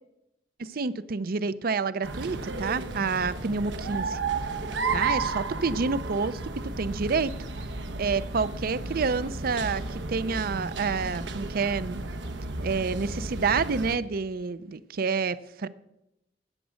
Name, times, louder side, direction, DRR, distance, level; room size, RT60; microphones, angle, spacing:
voice 1, 0.6-4.2 4.9-7.3 8.0-12.0 12.6-15.7, right 4 dB, 55° right, 16 dB, 0.6 m, -28 dB
sound 1, 2.0-14.0, right 3 dB, 85° right, 1.1 m, -33 dB
13.5 x 9.1 x 6.3 m, 0.88 s
head